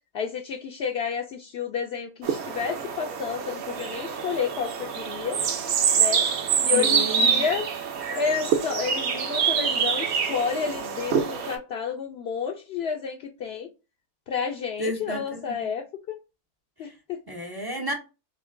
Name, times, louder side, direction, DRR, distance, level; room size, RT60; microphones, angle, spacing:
voice 1, 0.1-5.4 5.9-6.3 6.6-7.7 8.2-13.7 14.3-16.2 16.8-17.2, left 6 dB, 70° left, 0.6 m, -30 dB
sound 1, 2.2-11.6, right 7 dB, 60° right, 0.8 m, -26 dB
voice 2, 6.7-7.4 14.8-15.7 16.8-16.9 17.3-17.9, equal, 35° right, 0.3 m, -32 dB
5.6 x 2.1 x 2.5 m
omnidirectional pair, 1.6 m